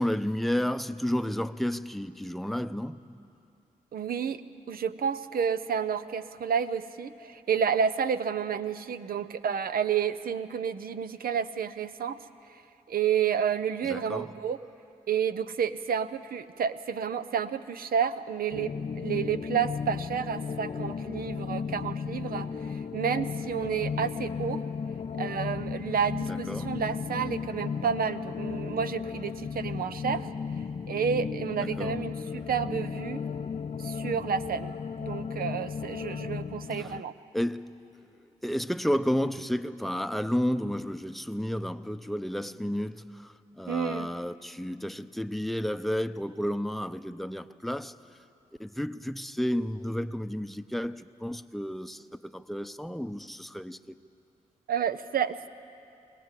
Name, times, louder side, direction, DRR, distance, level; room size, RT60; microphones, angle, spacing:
voice 1, 0.0-3.2 13.8-14.3 26.3-26.8 31.6-32.0 36.8-36.9 37.3-37.8 38.4-47.9 48.6-54.0, equal, ahead, 0.7 m, -32 dB
voice 2, 3.9-4.4 4.7-12.2 12.9-14.6 15.1-24.6 25.2-30.3 30.9-33.2 33.8-34.7 35.0-37.1 43.7-44.1 54.7-55.5, right 7 dB, 75° right, 0.7 m, -30 dB
sound 1, 18.5-37.0, left 6 dB, 40° left, 0.5 m, -35 dB
22.0 x 18.0 x 8.3 m
supercardioid pair, 45°, 15 cm